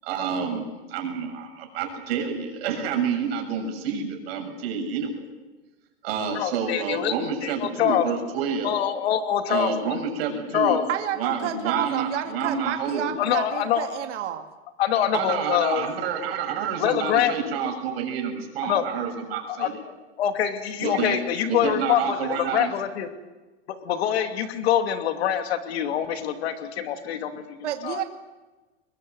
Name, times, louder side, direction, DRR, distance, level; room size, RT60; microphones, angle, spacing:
voice 1, 0.0-5.2 6.0-8.7 9.5-10.8 11.2-13.1 15.1-19.7 20.8-21.2 21.5-22.7, right 6 dB, 55° right, 3 dB, 7.0 m, -28 dB
voice 2, 6.3-7.1 7.4-8.0 8.6-9.7 10.5-10.8 13.2-14.0 14.8-15.8 16.8-17.3 18.6-18.8 19.5-19.7 20.2-23.1 23.7-27.6 27.8-28.0, left 10 dB, 60° left, 7 dB, 2.8 m, -25 dB
voice 3, 10.9-14.4 27.6-28.0, right 10 dB, 75° right, 6 dB, 2.3 m, -30 dB
23.0 x 21.5 x 8.1 m, 1.2 s
supercardioid pair, 170°, 35 cm